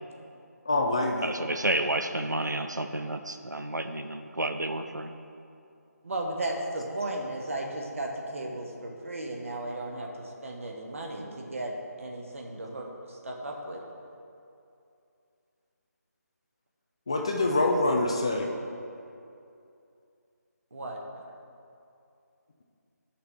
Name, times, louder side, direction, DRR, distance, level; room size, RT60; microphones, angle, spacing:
voice 1, 0.7-1.3 17.1-18.5, left 2 dB, 20° left, 1 dB, 0.3 m, -25 dB
voice 2, 1.2-5.1, right 1 dB, 90° right, 7 dB, 0.5 m, -30 dB
voice 3, 6.0-11.7 12.0-13.8 20.7-21.0, right 1 dB, 50° right, 0 dB, 1.1 m, -35 dB
12.0 x 5.9 x 3.3 m, 2.6 s
figure-of-eight pair, 155°, 9 cm